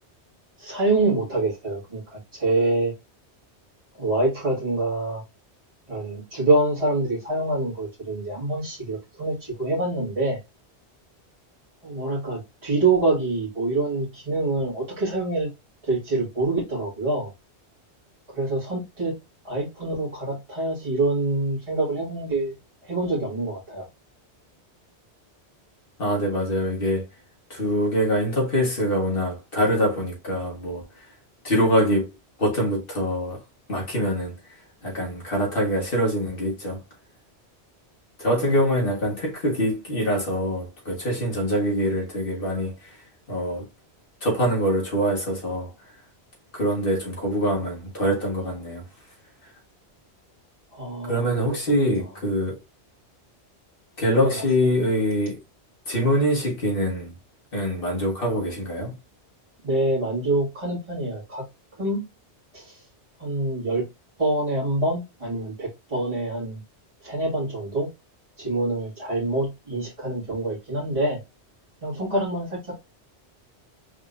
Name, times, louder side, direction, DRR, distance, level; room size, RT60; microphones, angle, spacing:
voice 1, 0.6-2.9 3.9-5.2 5.9-10.4 11.8-15.5 15.8-17.3 18.3-19.1 19.4-22.5 22.8-23.9 38.6-38.7 50.7-51.6 51.9-52.0 54.2-54.5 59.6-61.4 61.8-62.0 62.5-62.8 63.2-63.9 64.2-66.6 67.0-67.9 68.4-71.2 71.8-72.6, right 2 dB, 30° right, 2.0 m, -26 dB
voice 2, 26.0-27.1 27.5-31.1 31.4-32.1 32.4-33.4 33.7-34.3 34.8-36.8 38.2-43.0 43.3-43.7 44.2-45.7 46.5-48.8 49.4-49.5 51.0-52.6 54.0-55.4 55.9-57.1 57.5-59.0, equal, 55° left, 1.8 m, -24 dB
4.8 x 3.6 x 2.6 m
omnidirectional pair, 1.1 m